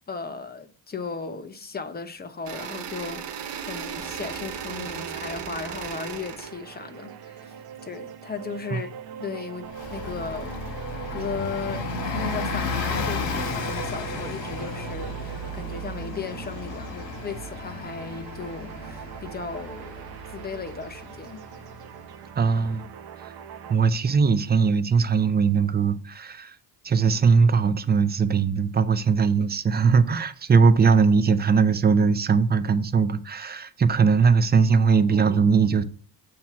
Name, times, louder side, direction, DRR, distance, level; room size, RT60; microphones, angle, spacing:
voice 1, 0.1-7.5 7.8-10.5 11.1-21.4, left 5 dB, 20° left, 0.8 m, -36 dB
sound 1, 2.4-6.5, right 8 dB, 75° right, 1.2 m, -36 dB
sound 2, 3.9-23.8, right 8 dB, 60° right, 0.9 m, -41 dB
Bus, 9.7-22.0, left 3 dB, 75° left, 1.7 m, -33 dB
voice 2, 22.4-22.8 23.2-23.3 23.7-26.6 26.8-35.8, right 5 dB, 25° right, 0.5 m, -20 dB
7.4 x 2.9 x 5.7 m
cardioid pair, 110°, 42 cm